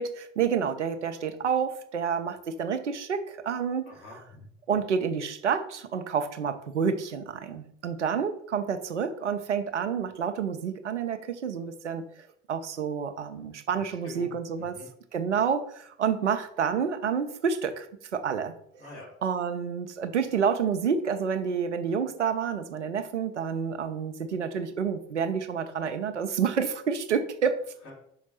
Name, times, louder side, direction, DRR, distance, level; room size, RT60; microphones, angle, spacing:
voice 1, 0.0-3.9 4.7-12.1 12.5-14.8 15.1-17.9 18.1-18.5 19.2-27.6, right 6 dB, 85° right, 8 dB, 0.6 m, -29 dB
voice 2, 3.8-4.5 13.7-14.3 14.6-14.9 18.8-19.1 27.8-27.9, left 2 dB, 80° left, -5 dB, 3.3 m, -46 dB
5.8 x 5.1 x 5.4 m, 0.69 s
figure-of-eight pair, 50°, 34 cm